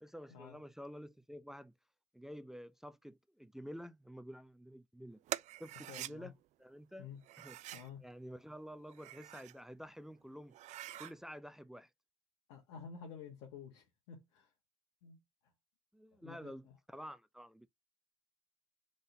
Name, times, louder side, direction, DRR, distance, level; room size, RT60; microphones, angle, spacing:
voice 1, 0.0-1.7 2.1-5.2 5.6-6.3 6.6-7.1 7.4-7.6 8.0-10.6 11.0-11.9 15.9-17.7, equal, 5° right, 0.5 m, -50 dB
sound 1, 5.3-6.1 7.2-7.9 8.8-9.6 10.0-10.1 10.5-11.1, right 14 dB, 55° right, 0.4 m, -45 dB
voice 2, 5.8-6.3 7.0-7.2 7.7-8.0 12.5-14.5 15.0-15.2 16.2-16.7, left 6 dB, 75° left, 1.3 m, -51 dB
3.8 x 3.8 x 2.7 m
hypercardioid pair, 60°, 14 cm